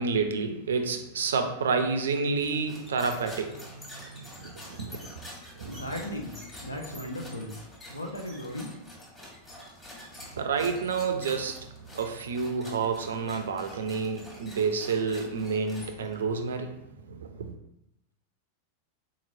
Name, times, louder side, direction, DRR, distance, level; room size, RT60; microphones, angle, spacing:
voice 1, 0.0-5.1 5.6-5.8 10.3-17.5, right 5 dB, 65° right, 0.4 m, -30 dB
sound 1, 2.4-16.3, left 1 dB, 15° left, 1.1 m, -47 dB
voice 2, 5.7-7.6 7.9-8.7, left 1 dB, 80° left, 0.6 m, -36 dB
3.8 x 2.9 x 2.6 m
figure-of-eight pair, 90°, 0 cm